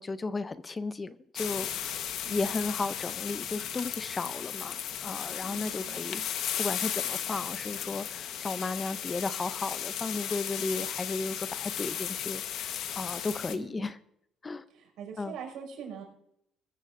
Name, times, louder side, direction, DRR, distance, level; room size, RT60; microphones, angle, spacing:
voice 1, 0.0-2.0 2.3-4.8 5.0-14.0 14.4-14.6 15.2-15.4, left 3 dB, 20° left, 0.5 m, -35 dB
sound 1, 1.4-13.6, left 9 dB, 65° left, 1.2 m, -35 dB
voice 2, 5.4-6.3 10.6-10.7 13.5-13.9 14.7-16.0, right 7 dB, 75° right, 5.5 m, -44 dB
21.5 x 14.0 x 2.6 m
cardioid pair, 145°, 0 cm